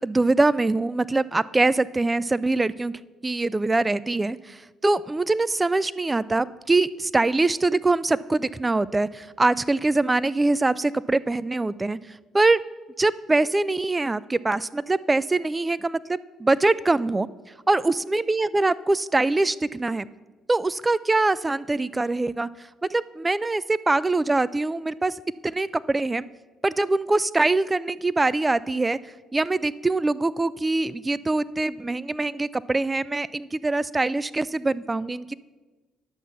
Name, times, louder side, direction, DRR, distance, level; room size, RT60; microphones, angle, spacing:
voice 1, 0.0-2.9 3.2-12.0 12.3-12.6 13.0-17.3 17.7-20.1 20.5-22.5 22.8-26.3 26.6-35.3, right 2 dB, 20° right, 18 dB, 0.4 m, -23 dB
10.0 x 7.2 x 5.6 m, 1.2 s
hypercardioid pair, 50°, 0 cm